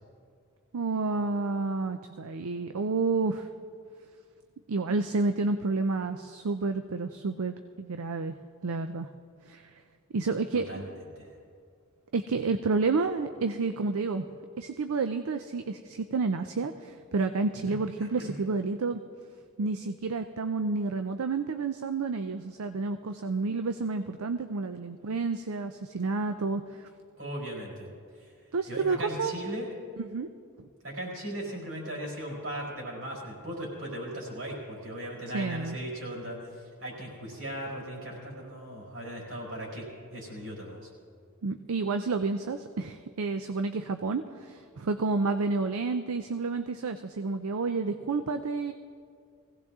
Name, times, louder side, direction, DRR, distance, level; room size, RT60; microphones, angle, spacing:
voice 1, 0.7-3.5 4.7-8.4 8.6-9.1 9.5-9.7 10.1-10.7 12.1-14.3 14.6-19.0 19.6-26.9 28.5-29.4 30.0-30.3 30.6-30.7 35.3-35.8 41.4-48.7, right 3 dB, 80° right, 8 dB, 0.5 m, -30 dB
voice 2, 10.5-10.9 11.1-11.3 17.7-18.3 27.2-27.9 28.2-28.3 28.7-29.7 30.8-39.8 40.1-40.9, right 1 dB, 60° right, -3 dB, 4.8 m, -38 dB
20.5 x 16.5 x 3.6 m, 2.3 s
head